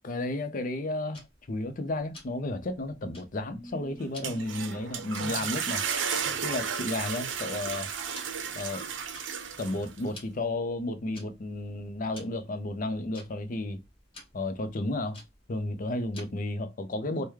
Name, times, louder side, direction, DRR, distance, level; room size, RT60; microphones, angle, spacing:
voice 1, 0.0-5.8 6.4-7.9 8.5-8.8 9.6-13.8 14.3-15.2 15.5-17.3, left 2 dB, 45° left, 0.5 m, -33 dB
Tick-tock, 1.1-16.6, left 2 dB, 30° left, 1.2 m, -54 dB
sound 1, 3.5-6.7, equal, 30° right, 1.4 m, -51 dB
sound 2, 4.0-10.1, right 7 dB, 85° right, 0.5 m, -33 dB
3.4 x 2.2 x 3.1 m
head